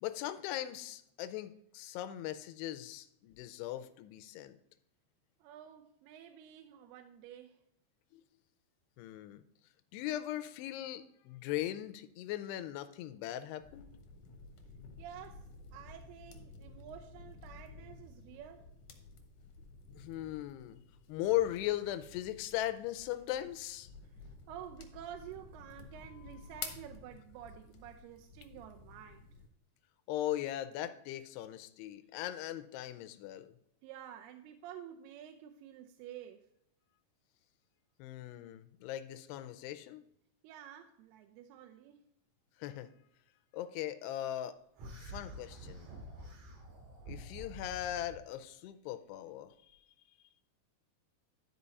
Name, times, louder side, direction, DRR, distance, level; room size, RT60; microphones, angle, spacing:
voice 1, 0.0-4.6 8.1-8.2 9.0-9.4 9.9-13.9 20.0-20.8 21.1-23.9 30.1-33.5 38.0-40.0 42.6-42.9 43.5-44.6 45.0-45.9 47.1-49.5, left 13 dB, 90° left, 11 dB, 2.7 m, -39 dB
voice 2, 5.4-7.6 15.0-18.7 24.0-29.3 33.8-36.5 40.4-42.0, right 10 dB, 80° right, 4 dB, 2.5 m, -50 dB
sound 1, 13.6-29.5, left 4 dB, 65° left, 2.1 m, -52 dB
sound 2, 44.8-48.2, right 1 dB, 65° right, 3.9 m, -48 dB
11.5 x 5.1 x 4.1 m, 0.76 s
omnidirectional pair, 4.7 m